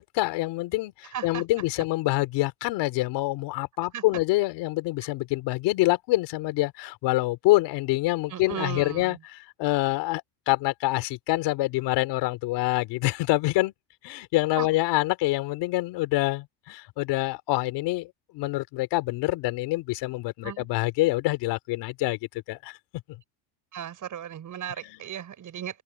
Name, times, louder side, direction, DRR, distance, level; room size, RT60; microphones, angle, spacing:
voice 1, 0.0-13.7 14.0-22.2 22.5-22.8 24.8-25.0, left 19 dB, 75° left, 3.5 m, -26 dB
voice 2, 1.1-1.4 3.9-4.0 8.3-9.2 14.6-14.7 20.4-20.7 23.7-25.8, right 10 dB, 45° right, 5.4 m, -36 dB
open air
cardioid pair, 110°, 42 cm